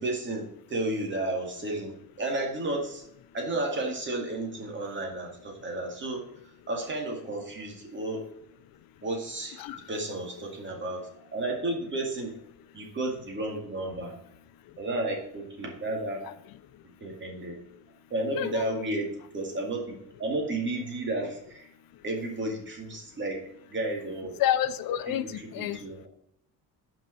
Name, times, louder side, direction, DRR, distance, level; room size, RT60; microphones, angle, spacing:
voice 1, 0.0-3.0 3.3-6.2 6.7-8.2 9.0-9.6 9.9-12.4 12.7-14.1 14.8-16.2 17.0-17.6 18.1-19.9 20.2-21.7 22.0-23.4 23.7-24.4 25.2-25.3 25.6-26.0, right 2 dB, 30° right, 1 dB, 2.2 m, -32 dB
voice 2, 18.3-18.8 24.4-25.8, left 11 dB, 65° left, 13 dB, 0.7 m, -29 dB
5.9 x 5.4 x 6.1 m, 0.75 s
cardioid pair, 150°, 37 cm